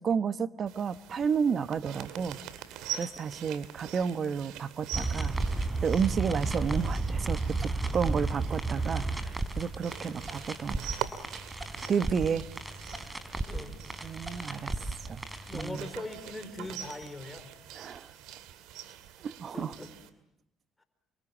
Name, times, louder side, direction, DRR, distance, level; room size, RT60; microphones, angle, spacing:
voice 1, 0.0-2.4 2.9-5.4 5.8-11.1 11.9-12.5 14.0-14.8 15.0-15.2 15.5-15.9 17.7-18.1 19.2-19.7, right 6 dB, 45° right, 13 dB, 1.3 m, -31 dB
sound 1, 0.7-20.1, right 10 dB, 80° right, 2.4 m, -44 dB
sound 2, 4.9-15.7, right 3 dB, 15° right, 3.8 m, -33 dB
voice 2, 13.5-13.8 15.0-15.1 15.5-17.5 19.5-19.9 20.8-20.9, left 2 dB, 15° left, 9 dB, 4.6 m, -41 dB
28.5 x 24.5 x 7.4 m, 0.82 s
supercardioid pair, 85°, 0 cm